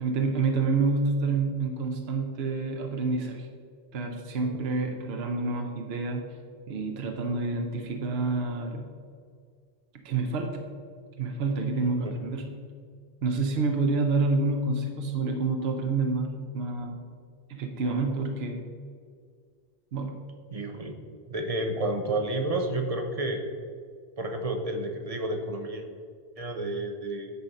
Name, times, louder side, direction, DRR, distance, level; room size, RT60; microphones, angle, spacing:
voice 1, 0.0-3.5 3.9-6.3 6.7-8.9 10.0-10.6 11.2-12.5 13.2-17.0 17.5-18.6 19.9-20.1, right 3 dB, 70° right, 4 dB, 1.0 m, -28 dB
voice 2, 20.5-20.9 21.3-23.4 24.2-25.8 26.4-27.3, right 2 dB, 35° right, 3 dB, 0.9 m, -30 dB
9.6 x 4.3 x 5.3 m, 2.1 s
omnidirectional pair, 1.1 m